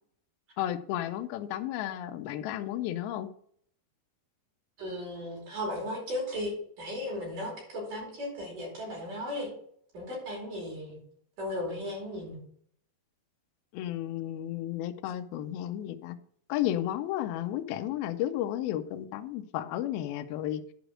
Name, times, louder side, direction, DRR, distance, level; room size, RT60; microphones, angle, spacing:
voice 1, 0.6-3.3 13.7-16.2 16.5-20.6, left 12 dB, 85° left, 2.1 m, -33 dB
voice 2, 4.8-9.5 9.9-11.0 11.4-12.4, left 1 dB, 45° right, 5.9 m, -36 dB
11.5 x 5.1 x 6.2 m
omnidirectional pair, 5.1 m